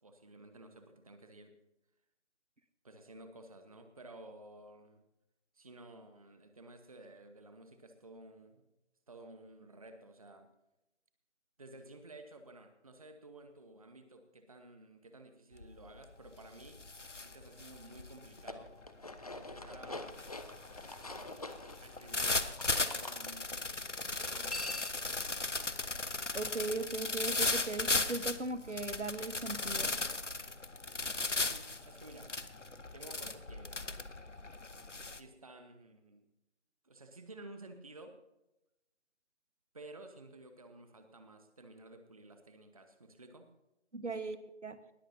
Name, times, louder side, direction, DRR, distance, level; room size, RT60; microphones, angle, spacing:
voice 1, 0.0-1.5 2.8-5.0 5.5-8.6 9.1-10.5 11.6-16.8 17.2-18.7 19.3-20.2 21.8-23.9 24.2-24.7 31.4-32.3 32.9-33.7 35.1-36.2 36.8-38.2 39.7-43.5, right 2 dB, 30° right, 7 dB, 1.1 m, -53 dB
sound 1, 15.6-15.9 16.3-35.2, left 3 dB, 90° left, 1.1 m, -37 dB
sound 2, 18.3-23.2 24.2-25.1, left 2 dB, 35° left, 0.8 m, -45 dB
voice 2, 26.3-30.0 43.9-44.8, right 3 dB, 80° right, 12 dB, 1.4 m, -38 dB
20.0 x 14.0 x 2.7 m, 0.92 s
figure-of-eight pair, 160°, 35 cm